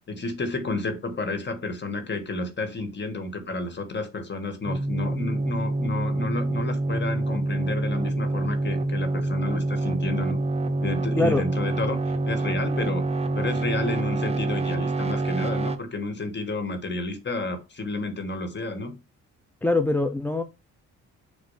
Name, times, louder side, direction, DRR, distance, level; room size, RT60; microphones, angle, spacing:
voice 1, 0.1-10.4 10.8-13.0 13.3-18.9, left 3 dB, 35° left, 8 dB, 1.6 m, -31 dB
sound 1, 4.7-15.8, right 2 dB, 20° right, 0.8 m, -26 dB
voice 2, 19.6-20.4, left 2 dB, 5° left, 8 dB, 0.5 m, -23 dB
7.0 x 2.5 x 5.6 m, 0.28 s
cardioid pair, 90°, 31 cm